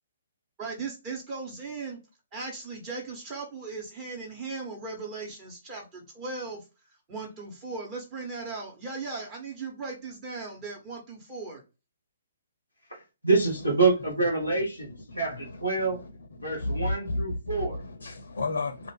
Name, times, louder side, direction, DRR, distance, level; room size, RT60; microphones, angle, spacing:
voice 1, 0.6-2.0 2.3-6.6 7.1-11.6, right 4 dB, 25° right, 1.0 m, -37 dB
voice 2, 12.9-16.0 16.4-17.8, right 3 dB, 90° right, 1.0 m, -27 dB
voice 3, 15.1-16.1 16.5-18.9, left 2 dB, 60° left, 0.5 m, -33 dB
2.4 x 2.4 x 3.3 m
figure-of-eight pair, 130°, 0 cm